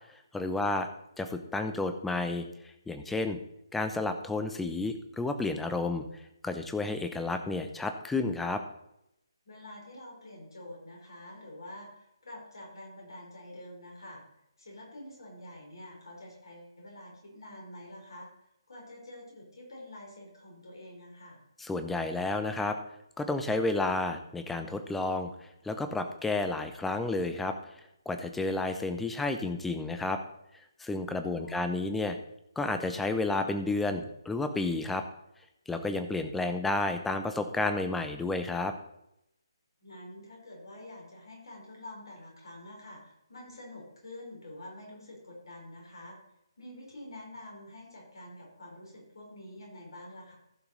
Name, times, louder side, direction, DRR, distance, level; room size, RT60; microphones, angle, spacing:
voice 1, 0.3-0.9 1.2-2.5 2.9-3.4 3.7-6.0 6.4-8.6 21.6-22.8 23.2-25.3 25.6-27.6 28.1-30.2 30.8-32.2 32.6-35.0 35.7-38.7, left 2 dB, 5° left, 7 dB, 0.7 m, -31 dB
voice 2, 9.4-14.2 14.6-18.3 18.7-21.4 31.4-31.9 39.8-46.2 46.6-50.3, left 1 dB, 60° left, -1 dB, 4.2 m, -47 dB
15.0 x 5.7 x 4.0 m, 0.82 s
figure-of-eight pair, 140°, 3 cm